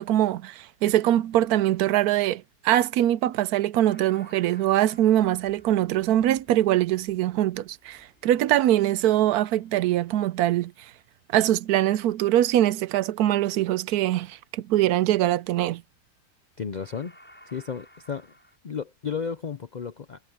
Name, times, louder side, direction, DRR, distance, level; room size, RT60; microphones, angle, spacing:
voice 1, 0.0-10.7 11.3-15.8, right 13 dB, 75° right, 1.0 m, -23 dB
sound 1, 3.7-10.9 16.1-16.5 16.8-18.6, equal, 5° left, 6.5 m, -56 dB
voice 2, 16.6-17.2 17.5-18.3 18.6-20.2, left 6 dB, 75° left, 0.4 m, -33 dB
omnidirectional pair, 1.7 m